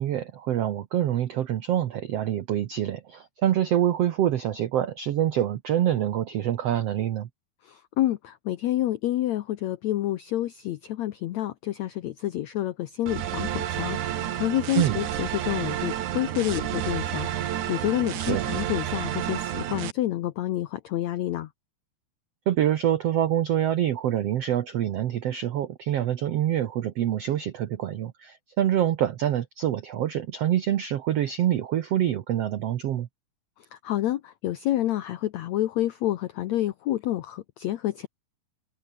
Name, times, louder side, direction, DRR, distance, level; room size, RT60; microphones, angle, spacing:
voice 1, 0.0-7.3 14.7-15.0 18.3-18.4 22.5-33.1, right 11 dB, 85° right, 1.4 m, -26 dB
voice 2, 7.6-21.5 33.6-38.1, left 13 dB, 80° left, 1.5 m, -28 dB
sound 1, 13.1-19.9, right 11 dB, 60° right, 2.6 m, -30 dB
omnidirectional pair, 4.4 m